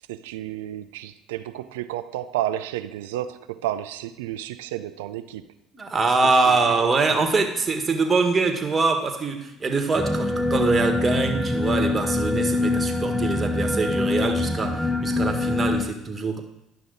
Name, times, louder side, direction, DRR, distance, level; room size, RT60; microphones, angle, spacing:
voice 1, 0.1-5.5 6.2-7.2, right 13 dB, 85° right, 0.4 m, -32 dB
voice 2, 5.7-16.4, right 3 dB, 30° right, 1.5 m, -24 dB
sound 1, 9.9-15.8, left 2 dB, 5° left, 0.9 m, -24 dB
11.5 x 5.6 x 4.0 m
hypercardioid pair, 70°, 0 cm